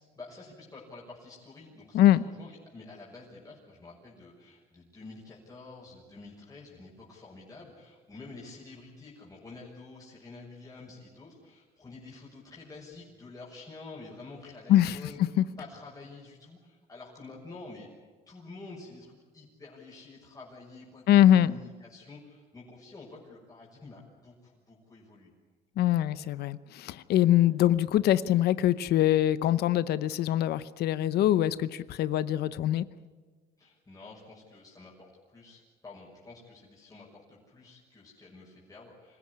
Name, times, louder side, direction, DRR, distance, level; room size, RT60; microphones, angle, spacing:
voice 1, 0.1-17.9 18.3-25.3 33.6-39.2, left 3 dB, 20° left, -4 dB, 6.2 m, -49 dB
voice 2, 21.1-21.5 25.8-32.8, left 12 dB, 70° left, 16 dB, 0.8 m, -23 dB
26.0 x 16.0 x 9.8 m, 1.5 s
cardioid pair, 110°, 17 cm